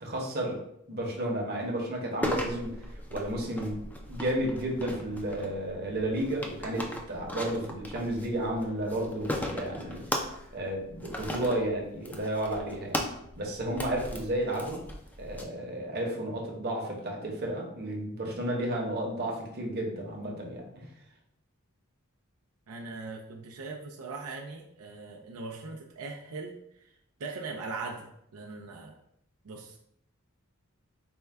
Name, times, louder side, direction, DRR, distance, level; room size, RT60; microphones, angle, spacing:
voice 1, 0.0-0.6 0.9-2.8 3.1-3.8 4.1-10.0 10.5-13.0 13.4-14.8 15.2-20.9, right 1 dB, 50° right, -1 dB, 0.8 m, -32 dB
sound 1, 2.2-15.4, left 1 dB, 10° left, 0.3 m, -38 dB
voice 2, 22.7-26.6 27.2-28.9 29.4-29.8, right 3 dB, 90° right, 0 dB, 0.5 m, -40 dB
4.4 x 2.2 x 3.4 m, 0.75 s
head